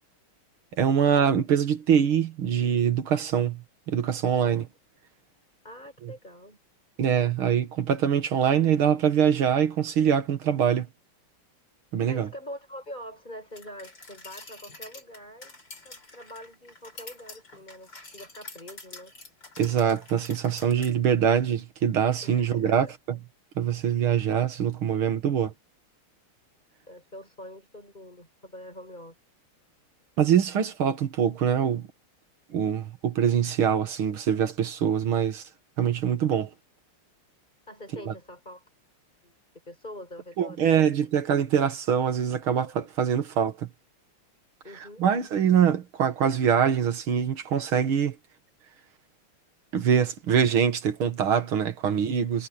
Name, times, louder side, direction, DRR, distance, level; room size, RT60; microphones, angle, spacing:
voice 1, 0.8-4.7 7.0-10.9 11.9-12.3 19.6-23.2 23.6-25.5 30.2-31.9 32.5-35.4 35.8-36.5 38.1-38.2 40.4-43.7 45.0-48.2 49.7-52.5, right 8 dB, 70° right, 2.6 m, -24 dB
voice 2, 5.6-6.6 12.1-19.1 22.2-22.9 26.9-29.2 37.7-38.6 39.2-39.3 39.7-40.8 44.6-45.0, left 1 dB, 20° left, 7.8 m, -44 dB
sound 1, 13.6-20.9, left 3 dB, 50° left, 6.2 m, -47 dB
omnidirectional pair, 2.4 m